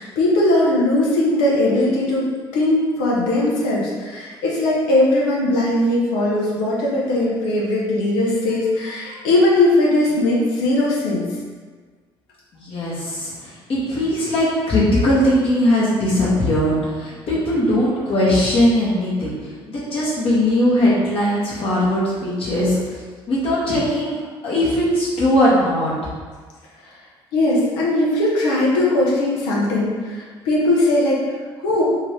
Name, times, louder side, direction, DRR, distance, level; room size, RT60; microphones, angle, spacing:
voice 1, 0.0-2.2 2.5-11.2 27.3-31.2 31.6-31.8, left 1 dB, 70° left, -5 dB, 0.7 m, -19 dB
voice 2, 12.5-22.8 23.3-24.2 24.4-25.9, left 1 dB, 45° left, -8 dB, 0.9 m, -19 dB
2.7 x 2.6 x 3.3 m, 1.5 s
figure-of-eight pair, 50°, 13 cm